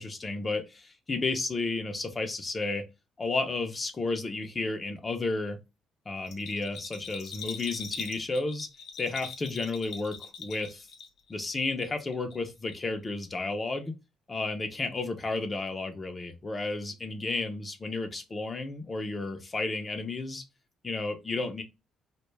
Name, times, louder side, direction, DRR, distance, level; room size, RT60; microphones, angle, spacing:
voice 1, 0.0-2.8 3.2-5.6 6.1-8.7 9.0-10.9 11.3-13.9 14.3-20.4 20.8-21.6, left 3 dB, 30° left, 0.6 m, -32 dB
Bell, 6.2-11.3 11.6-12.4 12.7-12.8, left 6 dB, 80° left, 0.7 m, -42 dB
2.2 x 2.2 x 3.1 m
cardioid pair, 80°, 0 cm